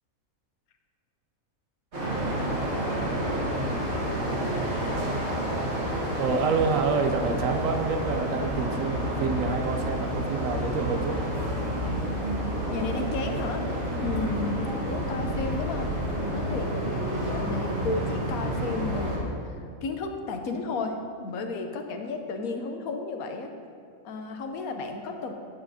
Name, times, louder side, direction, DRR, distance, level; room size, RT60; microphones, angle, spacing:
sound 1, 1.9-19.2, right 1 dB, 50° right, 1.7 m, -29 dB
voice 1, 6.2-11.2 13.9-14.1, right 4 dB, 75° right, 6 dB, 1.0 m, -28 dB
sound 2, 7.4-14.9, left 1 dB, 65° left, 2.2 m, -41 dB
voice 2, 12.7-14.6 14.9-15.9 16.3-19.4 19.8-23.5 24.0-25.3, left 3 dB, 90° left, 5 dB, 1.2 m, -33 dB
8.7 x 8.6 x 2.7 m, 2.4 s
omnidirectional pair, 1.5 m